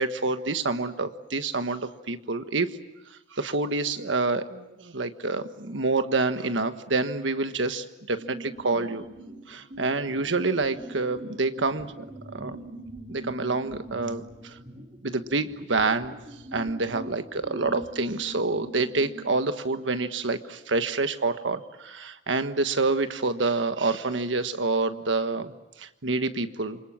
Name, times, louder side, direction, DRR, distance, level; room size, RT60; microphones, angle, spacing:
voice 1, 0.0-2.8 3.3-9.0 9.5-12.6 13.1-14.6 15.0-16.1 16.5-25.5 25.8-26.8, right 3 dB, 85° right, 9 dB, 1.4 m, -27 dB
sound 1, 8.2-19.3, right 1 dB, 35° right, 3.6 m, -43 dB
28.0 x 26.0 x 7.5 m, 0.97 s
head